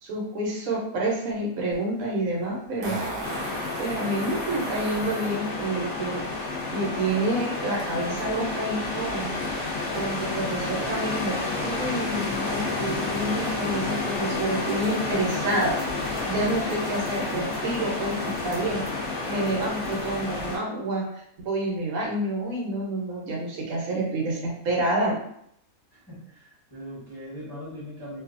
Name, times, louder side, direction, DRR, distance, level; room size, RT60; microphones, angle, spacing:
voice 1, 0.0-3.0 3.8-9.3 9.9-15.8 16.3-18.8 19.3-25.2, right 1 dB, 75° right, -2 dB, 1.2 m, -28 dB
Fart, 1.7-1.8 2.8-5.4 7.8-7.9, right 2 dB, 50° right, 0.8 m, -35 dB
sound 1, 3.2-20.6, left 3 dB, 45° left, 1.0 m, -30 dB
voice 2, 25.9-28.2, equal, 20° left, -10 dB, 1.1 m, -40 dB
2.6 x 2.4 x 2.5 m, 0.72 s
omnidirectional pair, 1.5 m